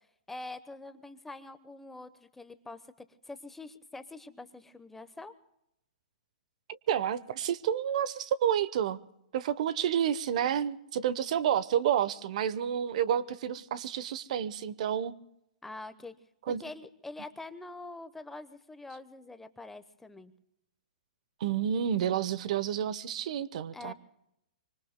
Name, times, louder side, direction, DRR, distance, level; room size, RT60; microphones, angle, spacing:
voice 1, 0.3-2.8 3.2-5.3 15.6-16.1 16.6-20.3 23.7-23.9, left 2 dB, 5° left, 11 dB, 0.9 m, -45 dB
voice 2, 6.7-9.0 9.3-15.1 16.5-16.6 21.4-23.9, right 9 dB, 60° right, 17 dB, 0.9 m, -30 dB
25.0 x 25.0 x 2.2 m, 0.80 s
hypercardioid pair, 135°, 4 cm